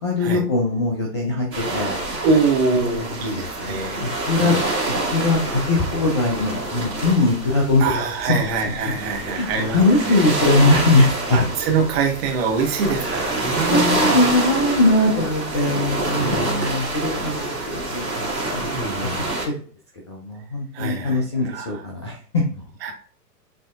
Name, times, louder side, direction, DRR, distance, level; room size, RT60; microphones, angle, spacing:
voice 1, 0.0-2.0 2.8-4.6 4.9-7.8 8.3-8.7 9.1-11.5 13.0-19.5 20.1-22.6, left 2 dB, 20° left, -1 dB, 0.4 m, -21 dB
sound 1, 1.5-19.5, right 2 dB, 75° right, 1.9 m, -27 dB
voice 2, 2.2-4.6 7.8-10.1 11.3-14.0 16.1-16.7 18.7-19.4 20.7-21.8 22.8-22.9, right 4 dB, 40° right, 2 dB, 1.3 m, -24 dB
7.1 x 2.8 x 2.4 m, 0.44 s
figure-of-eight pair, 105°, 49 cm